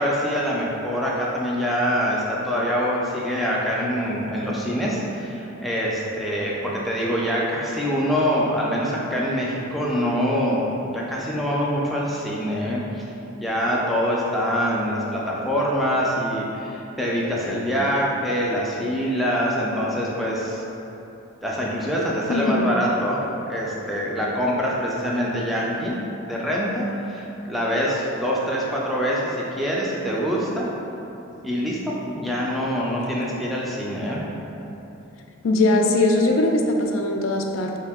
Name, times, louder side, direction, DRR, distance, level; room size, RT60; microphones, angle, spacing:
voice 1, 0.0-13.0 13.4-20.6 21.4-25.9 26.3-30.7 31.4-34.3, equal, ahead, -5 dB, 0.4 m, -25 dB
voice 2, 22.3-22.7 35.4-37.8, left 2 dB, 65° left, 3 dB, 0.4 m, -20 dB
3.3 x 2.8 x 3.5 m, 3.0 s
head